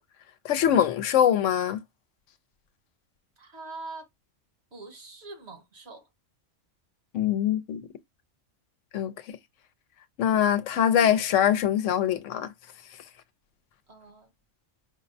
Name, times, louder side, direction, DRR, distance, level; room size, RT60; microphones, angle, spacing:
voice 1, 0.4-1.8 7.1-7.8 8.9-9.1 10.2-12.5, left 9 dB, 85° left, 0.9 m, -23 dB
voice 2, 3.4-4.1 4.7-6.1 13.9-14.3, right 3 dB, 60° right, 1.5 m, -43 dB
5.1 x 2.0 x 2.5 m
omnidirectional pair, 1.3 m